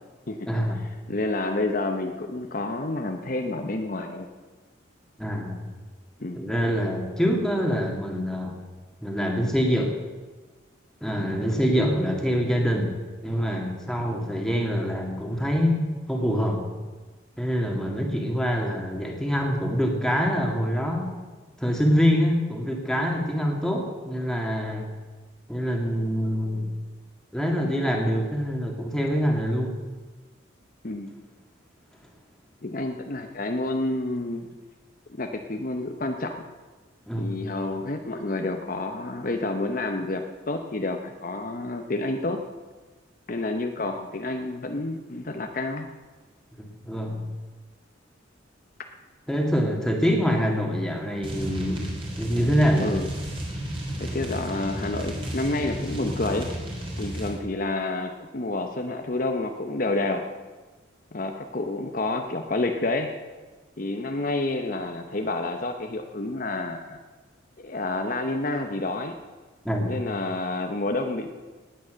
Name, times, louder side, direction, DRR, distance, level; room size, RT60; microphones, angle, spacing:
voice 1, 0.5-0.8 5.2-5.6 6.4-8.6 9.0-9.9 11.0-12.9 13.2-16.6 17.4-21.1 21.6-24.9 25.5-26.7 27.3-29.8 37.1-37.3 46.9-47.2 49.3-51.9 52.2-53.0 69.6-69.8, equal, 5° left, 0 dB, 2.2 m, -25 dB
voice 2, 1.1-4.3 6.2-6.4 30.8-31.1 32.6-34.5 35.1-36.4 37.2-42.4 43.3-45.9 52.8-53.1 54.0-56.5 57.0-60.3 61.1-63.1 63.8-67.0 67.6-69.2 69.8-71.3, left 2 dB, 45° left, 4 dB, 0.9 m, -29 dB
Vinyl Noise Crackles for Looping, 51.2-57.3, right 1 dB, 30° right, 3.4 m, -33 dB
18.5 x 9.2 x 6.4 m, 1.3 s
head